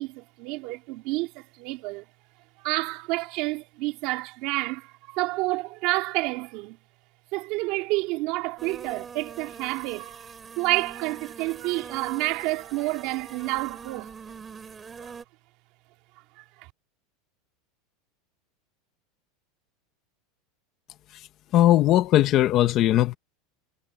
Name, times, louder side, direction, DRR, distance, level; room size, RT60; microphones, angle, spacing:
voice 1, 0.0-2.0 2.6-6.8 7.3-10.3 10.6-14.1 15.0-15.2 16.4-16.7, right 22 dB, 45° right, 3.4 m, -29 dB
sound 1, 8.6-15.2, right 6 dB, 15° right, 3.2 m, -43 dB
voice 2, 21.5-23.2, left 13 dB, 30° left, 0.9 m, -19 dB
supercardioid pair, 175°, 0 cm